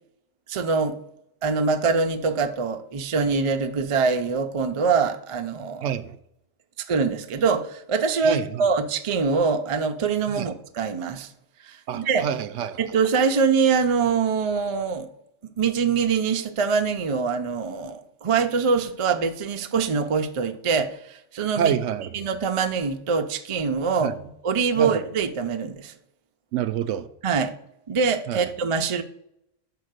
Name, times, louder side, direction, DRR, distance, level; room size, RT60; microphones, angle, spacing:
voice 1, 0.5-1.0 1.4-6.0 6.8-11.3 11.6-12.3 12.8-15.1 15.6-21.7 22.1-24.1 24.4-25.9 27.2-27.5 27.9-29.0, right 5 dB, 45° right, 0.4 m, -24 dB
voice 2, 5.8-6.1 8.2-8.6 10.3-10.5 11.9-12.8 21.6-22.2 24.0-24.1 24.8-25.0 26.5-27.1 28.3-28.5, right 8 dB, 75° right, 0.9 m, -27 dB
5.8 x 4.7 x 6.5 m
omnidirectional pair, 1.3 m